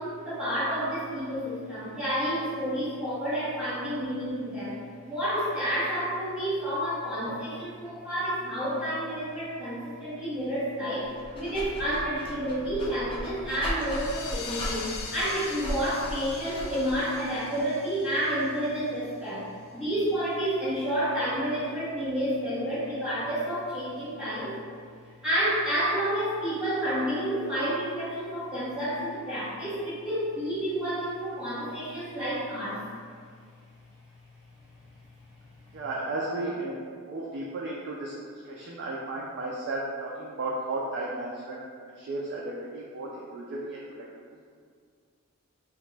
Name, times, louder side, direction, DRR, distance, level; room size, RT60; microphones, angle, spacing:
voice 1, 0.0-24.6 25.2-32.8, right 1 dB, 5° right, -14 dB, 0.8 m, -30 dB
Dog, 11.0-17.1, left 1 dB, 25° left, 0.4 m, -37 dB
sound 1, 13.8-19.1, left 5 dB, 90° left, 0.4 m, -42 dB
voice 2, 35.7-41.6 41.8-44.1 44.3-44.6, right 2 dB, 55° right, -4 dB, 0.3 m, -34 dB
2.9 x 2.1 x 3.2 m, 2.1 s
head